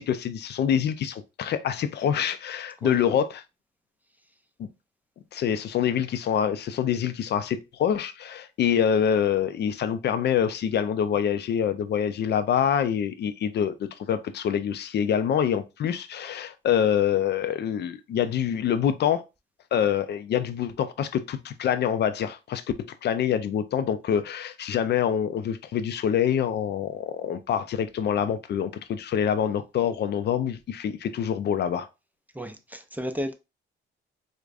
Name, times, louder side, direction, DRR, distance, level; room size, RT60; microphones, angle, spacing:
voice 1, 0.0-3.3 4.6-4.7 5.3-19.2 19.7-31.9, left 8 dB, 60° left, 0.4 m, -26 dB
voice 2, 32.3-33.3, equal, 10° right, 0.5 m, -33 dB
4.6 x 2.1 x 2.4 m
cardioid pair, 90°, 20 cm